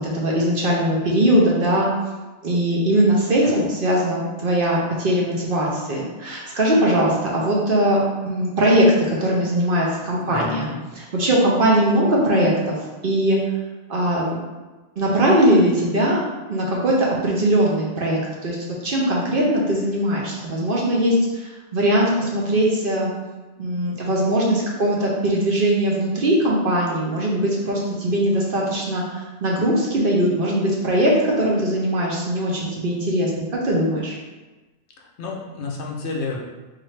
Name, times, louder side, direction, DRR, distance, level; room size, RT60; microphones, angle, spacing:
voice 1, 0.0-1.9 2.4-10.7 10.9-12.7 13.0-13.4 13.9-14.4 15.0-16.2 16.5-18.6 18.8-23.1 23.6-34.1, right 1 dB, 55° right, -3 dB, 0.8 m, -20 dB
voice 2, 10.2-10.8 35.0-36.4, left 3 dB, 70° left, -1 dB, 0.9 m, -30 dB
4.1 x 2.6 x 3.1 m, 1.2 s
omnidirectional pair, 1.3 m